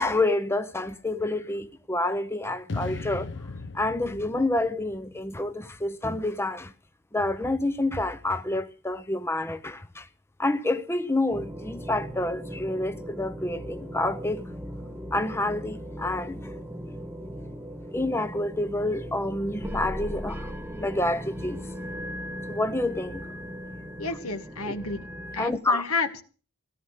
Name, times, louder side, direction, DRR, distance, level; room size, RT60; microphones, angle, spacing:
voice 1, 0.0-3.3 3.7-6.7 7.1-10.1 10.4-14.4 15.1-16.5 17.9-21.6 22.4-23.3 24.7-24.8 25.4-25.8, left 2 dB, 10° left, 0.7 m, -28 dB
sound 1, 2.7-5.9, left 3 dB, 55° left, 0.7 m, -38 dB
sound 2, 11.3-25.5, equal, 10° right, 1.4 m, -38 dB
voice 2, 24.0-25.0 25.3-26.2, left 3 dB, 75° left, 1.8 m, -30 dB
17.5 x 11.0 x 6.6 m
head